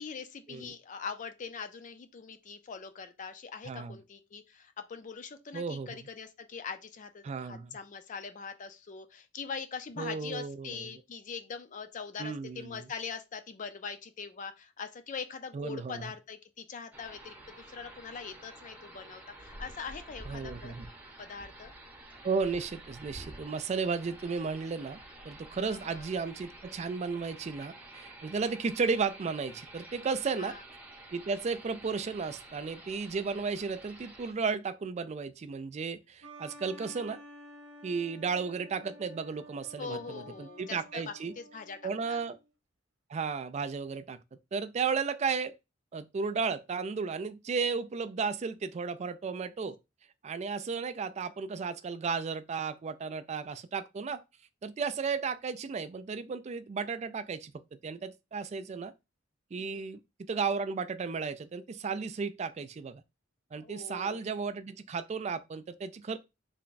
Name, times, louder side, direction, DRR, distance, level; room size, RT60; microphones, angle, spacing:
voice 1, 0.0-20.7 21.2-21.7 25.7-26.1 30.4-30.6 39.8-41.8 42.1-42.2 59.6-59.9 63.6-64.2, left 5 dB, 40° left, 0.4 m, -42 dB
voice 2, 3.7-4.0 5.5-6.1 7.2-7.8 10.0-11.0 12.2-12.9 15.5-16.1 20.3-20.9 22.2-25.0 25.2-30.6 31.1-37.2 37.8-41.3 41.8-42.4 43.1-44.2 44.5-45.5 45.9-49.8 50.2-54.2 54.6-57.5 57.8-58.9 59.5-63.0 63.5-66.2, right 5 dB, 35° right, 0.3 m, -34 dB
sound 1, 16.9-34.3, right 1 dB, 10° right, 0.7 m, -50 dB
sound 2, 36.2-42.5, equal, 70° right, 0.7 m, -52 dB
3.5 x 2.2 x 3.8 m
head